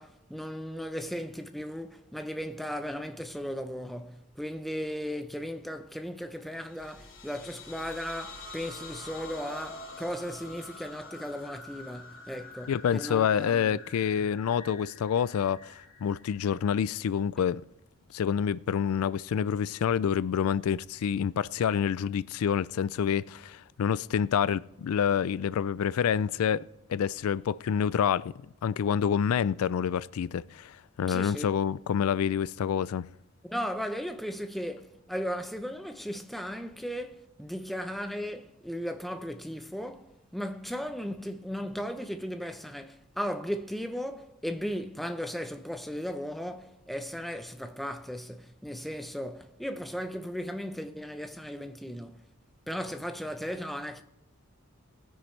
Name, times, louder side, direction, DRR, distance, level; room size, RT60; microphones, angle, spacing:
voice 1, 0.0-13.8 31.1-31.5 33.5-52.2 52.7-54.0, equal, ahead, 0.6 m, -36 dB
sound 1, 6.6-17.2, left 3 dB, 60° left, 2.6 m, -47 dB
voice 2, 12.7-17.6 18.1-26.6 26.9-28.3 28.6-33.1, left 8 dB, 80° left, 0.3 m, -27 dB
19.5 x 10.0 x 3.2 m
head